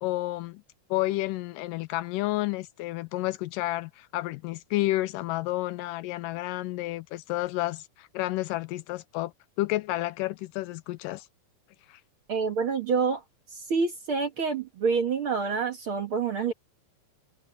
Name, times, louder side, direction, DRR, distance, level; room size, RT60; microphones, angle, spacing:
voice 1, 0.0-0.6 0.9-9.3 9.6-11.3 11.9-12.0, left 17 dB, 80° left, 2.1 m, -30 dB
voice 2, 12.3-13.2 13.5-16.5, right 5 dB, 50° right, 1.8 m, -27 dB
omnidirectional pair, 4.0 m